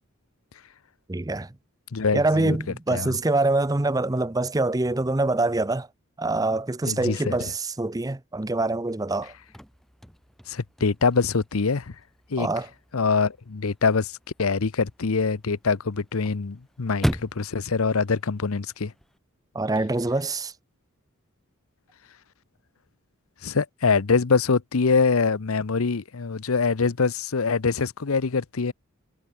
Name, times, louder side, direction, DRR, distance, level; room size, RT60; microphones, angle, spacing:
voice 1, 1.1-1.5 2.1-5.9 6.2-9.3 12.4-12.7 19.5-20.5, right 2 dB, 15° right, 0.6 m, -25 dB
voice 2, 1.9-2.6 2.9-3.2 6.8-7.5 10.5-12.0 12.3-12.5 12.9-18.9 23.4-28.7, left 4 dB, 80° left, 0.8 m, -24 dB
Chirp tweet / Car / Slam, 9.2-19.2, equal, ahead, 2.9 m, -38 dB
head